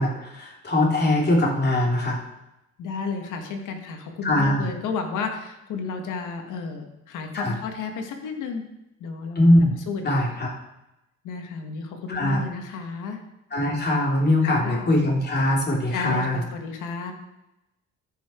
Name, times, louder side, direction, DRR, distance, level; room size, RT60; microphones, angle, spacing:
voice 1, 0.0-2.2 4.2-4.7 7.3-7.6 9.3-9.7 10.0-10.5 12.1-12.4 13.5-16.4, left 1 dB, 35° left, -1 dB, 3.0 m, -21 dB
voice 2, 2.8-8.6 9.0-9.4 9.9-10.1 11.2-13.2 14.4-14.9 15.9-17.1, left 5 dB, 85° left, 4 dB, 1.6 m, -32 dB
14.0 x 5.8 x 4.4 m, 0.89 s
cardioid pair, 90°, 30 cm